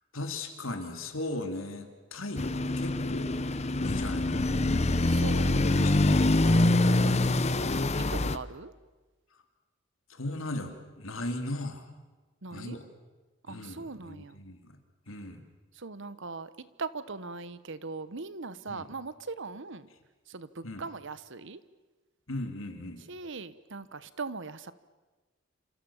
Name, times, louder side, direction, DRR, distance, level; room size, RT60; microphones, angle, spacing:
voice 1, 0.1-3.4 3.7-6.8 10.1-11.9 12.5-12.8 13.5-14.8 15.1-15.4 18.7-18.9 20.6-20.8 22.3-23.0, left 1 dB, 70° left, 5 dB, 3.3 m, -38 dB
sound 1, 2.4-8.4, left 2 dB, 30° left, 0.9 m, -25 dB
voice 2, 5.0-6.1 8.1-8.7 12.4-12.8 13.5-14.4 15.7-19.9 20.3-21.6 23.1-24.7, right 3 dB, 65° right, 15 dB, 1.1 m, -40 dB
28.5 x 27.0 x 7.3 m, 1.2 s
head